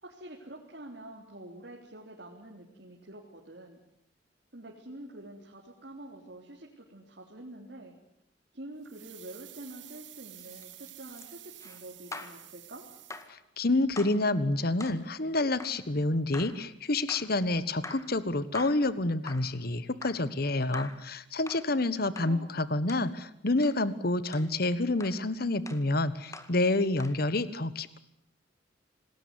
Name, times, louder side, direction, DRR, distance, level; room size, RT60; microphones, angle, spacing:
voice 1, 0.0-3.8 4.5-8.0 8.5-12.8 21.7-21.9 22.2-22.5, right 1 dB, 60° right, -1 dB, 3.7 m, -47 dB
sound 1, 8.8-13.6 13.9-14.0, right 14 dB, 85° right, 2.5 m, -50 dB
sound 2, 10.3-12.4 13.1-13.4 14.0-14.2 14.8-15.0 15.6-15.8 16.3-16.6 17.1-17.3 17.8-18.1 18.5-18.9 19.3-19.5 20.0-20.3 20.7-21.1 21.5-21.7 22.2-22.4 22.9-23.1 23.6-23.8 24.3-24.5 25.0-25.2 25.7-25.9 26.3-26.6 27.0-27.2, left 2 dB, 15° left, 2.0 m, -44 dB
voice 2, 13.3-28.0, left 2 dB, 55° left, 15 dB, 1.4 m, -28 dB
28.0 x 20.0 x 9.8 m, 0.74 s
head